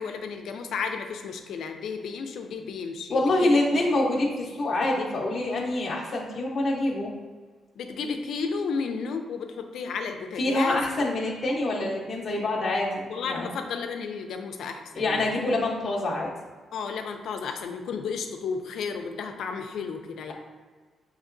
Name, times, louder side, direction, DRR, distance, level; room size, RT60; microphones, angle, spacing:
voice 1, 0.0-3.8 7.8-10.8 13.1-15.4 16.7-20.3, left 5 dB, 70° left, 5 dB, 0.4 m, -33 dB
voice 2, 3.1-7.1 10.4-13.5 14.9-16.3, left 2 dB, 25° left, -5 dB, 0.7 m, -26 dB
6.5 x 2.9 x 2.5 m, 1.5 s
cardioid pair, 165°, 0 cm